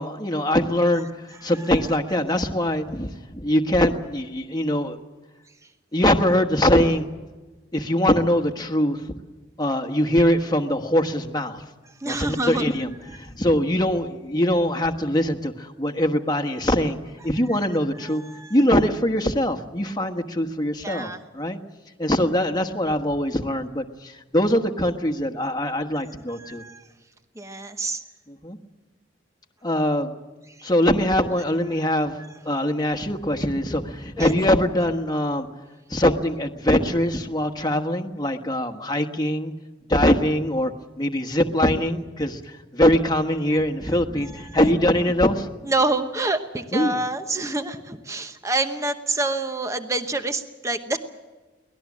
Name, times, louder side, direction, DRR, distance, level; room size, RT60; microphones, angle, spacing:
voice 1, 0.0-5.0 5.9-7.1 7.7-9.0 9.6-11.6 12.0-17.0 17.2-18.2 18.5-21.6 22.0-26.6 28.3-28.6 29.6-30.1 30.6-32.2 32.4-35.5 35.9-39.5 39.9-40.7 41.0-45.5 46.7-47.1, left 1 dB, 20° left, 5 dB, 1.3 m, -22 dB
voice 2, 12.0-12.7 18.1-18.5 20.8-21.2 26.4-26.8 27.4-28.0 30.6-30.7 31.8-31.9 34.2-34.3 44.6-44.8 45.6-51.0, right 2 dB, 15° right, 8 dB, 1.0 m, -27 dB
24.0 x 18.5 x 7.4 m, 1.2 s
head